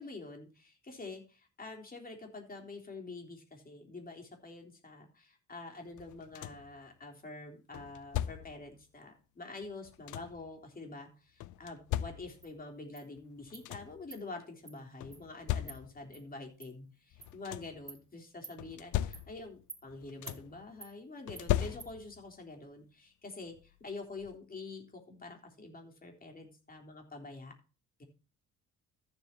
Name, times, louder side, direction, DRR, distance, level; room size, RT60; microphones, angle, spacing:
voice 1, 0.0-27.5 28.0-28.1, left 3 dB, 30° left, 2 dB, 3.5 m, -47 dB
sound 1, 6.0-6.8 7.7-8.7 9.6-10.5 11.4-12.6 13.2-13.3 13.5-14.1 15.0-16.2 17.1-17.9 18.6-19.6 19.9-20.6 21.3-22.3 23.6-23.7 24.2-24.4, left 13 dB, 80° left, 0.6 m, -38 dB
Insect, 12.4-12.5 13.0-13.1 13.5-13.7 14.1-14.2 14.7-14.8 15.1-15.2 15.7-15.8 16.1-16.2 16.6-16.7 17.2-17.3 17.9-18.0 18.4-18.6 19.1-19.3 19.7-19.8 20.3-20.4 20.8-20.9 21.4-21.5 21.8-21.9, right 4 dB, 25° right, 1.7 m, -49 dB
14.5 x 7.6 x 2.8 m, 0.33 s
cardioid pair, 90°, 30 cm